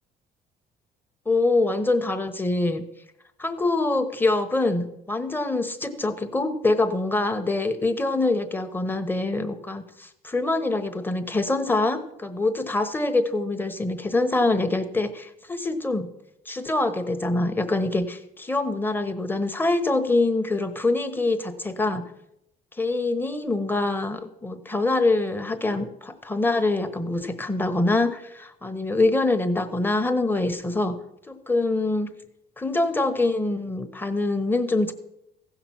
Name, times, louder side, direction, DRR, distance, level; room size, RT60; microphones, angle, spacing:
voice 1, 1.3-2.8 3.4-16.1 16.5-22.0 22.8-30.9 31.3-32.1 32.6-34.9, left 2 dB, 10° left, 8 dB, 1.1 m, -24 dB
15.5 x 5.9 x 5.8 m, 0.81 s
cardioid pair, 110°, 17 cm